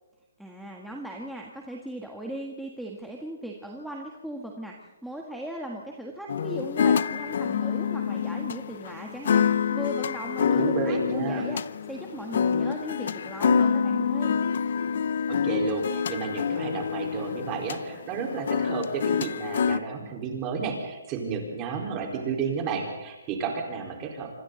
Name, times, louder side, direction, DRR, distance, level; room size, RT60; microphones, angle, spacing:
voice 1, 0.4-11.6 11.9-14.4, right 1 dB, ahead, -1 dB, 1.6 m, -38 dB
sound 1, 6.3-19.8, left 7 dB, 55° left, 0.7 m, -26 dB
voice 2, 10.6-11.5 15.3-24.4, right 5 dB, 20° right, 1 dB, 4.4 m, -32 dB
26.5 x 25.0 x 4.0 m, 1.1 s
hypercardioid pair, 165°, 0 cm